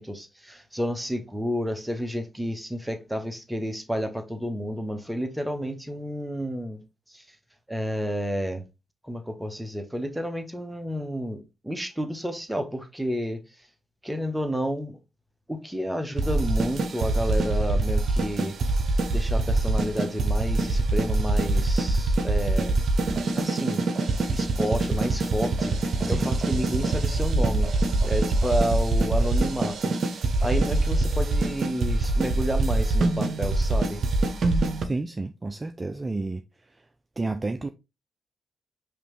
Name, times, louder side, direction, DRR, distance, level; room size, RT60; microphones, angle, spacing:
voice 1, 0.0-6.8 7.1-7.2 7.7-8.6 9.0-13.4 14.0-15.0 15.5-18.5 19.1-22.8 23.3-23.9 24.3-27.7 28.0-29.9 30.4-34.0, equal, 5° right, 1.0 m, -30 dB
sound 1, 16.2-34.8, right 2 dB, 60° right, 0.7 m, -24 dB
voice 2, 34.8-36.4 37.2-37.7, right 3 dB, 30° right, 0.4 m, -30 dB
5.0 x 3.0 x 3.2 m
supercardioid pair, 50°, 0 cm